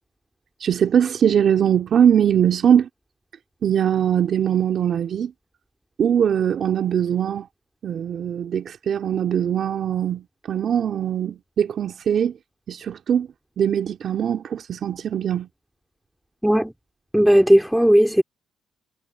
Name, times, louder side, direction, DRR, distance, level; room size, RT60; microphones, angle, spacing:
voice 1, 0.6-2.9 3.6-5.3 6.0-7.5 7.8-12.3 12.7-13.3 13.6-15.5, right 9 dB, 60° right, 3.2 m, -21 dB
voice 2, 17.1-18.2, equal, 5° right, 3.3 m, -16 dB
cardioid pair, 90°, 0 cm